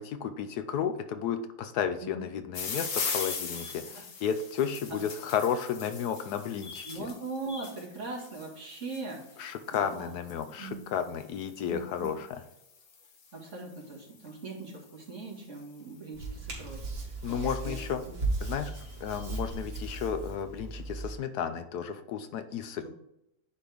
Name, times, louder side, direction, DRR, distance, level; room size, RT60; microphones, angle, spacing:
voice 1, 0.0-7.1 9.4-12.4 17.2-18.0 18.4-18.7 19.0-22.9, left 8 dB, 75° left, 9 dB, 1.1 m, -33 dB
sound 1, 2.5-15.7 16.6-17.0 17.6-17.7 17.9-18.0 18.3-19.6, left 5 dB, 50° left, 1.4 m, -41 dB
voice 2, 6.8-10.1 10.6-10.8 11.6-12.1 13.3-17.8 18.5-18.6 22.7-22.9, right 3 dB, 45° right, -3 dB, 2.2 m, -41 dB
Hands, 16.1-21.1, right 3 dB, 75° right, 2.4 m, -36 dB
9.9 x 4.3 x 3.4 m, 0.85 s
omnidirectional pair, 1.8 m